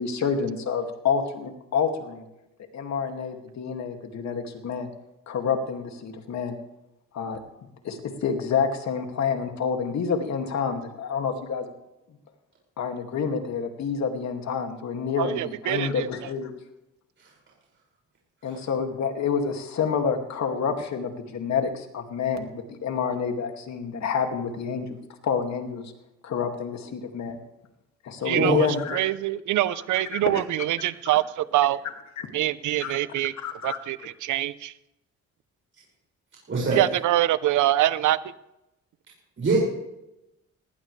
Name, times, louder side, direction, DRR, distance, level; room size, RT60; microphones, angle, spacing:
voice 1, 0.0-2.2 2.7-4.9 5.3-6.6 7.1-7.4 7.8-11.7 12.8-16.5 18.4-25.9 26.2-27.4 28.0-29.1 30.1-30.4 32.8-33.0 33.4-33.8, left 6 dB, 65° left, 4 dB, 2.4 m, -28 dB
voice 2, 15.2-16.1 28.2-31.8 32.3-33.3 33.6-34.7 36.7-38.3, right 14 dB, 80° right, 16 dB, 0.8 m, -25 dB
voice 3, 36.5-36.8 39.4-39.6, right 3 dB, 40° right, -4 dB, 6.2 m, -22 dB
19.0 x 17.0 x 3.3 m, 0.90 s
cardioid pair, 90°, 30 cm